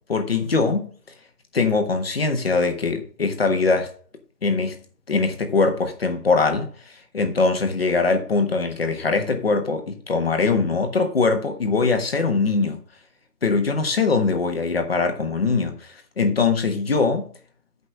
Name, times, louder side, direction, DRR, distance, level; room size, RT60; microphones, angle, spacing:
voice 1, 0.1-0.9 1.5-3.9 4.4-4.8 5.1-6.7 7.1-12.8 13.4-17.3, left 4 dB, 35° left, 1.5 m, -22 dB
8.9 x 5.5 x 6.1 m
hypercardioid pair, 175°, 49 cm